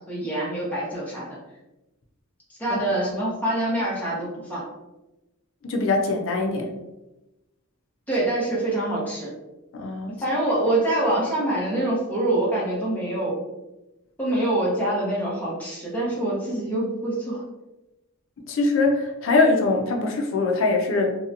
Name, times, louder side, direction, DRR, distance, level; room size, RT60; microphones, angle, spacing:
voice 1, 0.1-1.4 2.5-4.6 8.1-9.3 10.1-13.4 14.2-17.4, right 1 dB, 10° left, -7 dB, 0.8 m, -25 dB
voice 2, 5.6-6.7 9.7-10.2 18.5-21.1, left 3 dB, 60° left, 2 dB, 0.4 m, -22 dB
2.6 x 2.1 x 2.7 m, 0.98 s
head